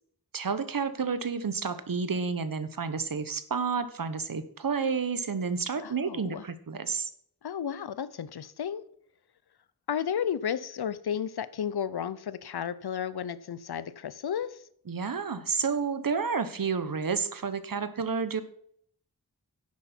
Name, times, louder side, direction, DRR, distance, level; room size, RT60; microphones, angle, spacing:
voice 1, 0.3-7.1 14.9-18.4, right 5 dB, 60° right, 1.0 m, -30 dB
voice 2, 5.8-6.4 7.4-8.8 9.9-14.7, left 8 dB, 90° left, 0.6 m, -33 dB
10.5 x 8.2 x 4.4 m
wide cardioid pair, 70°, 38 cm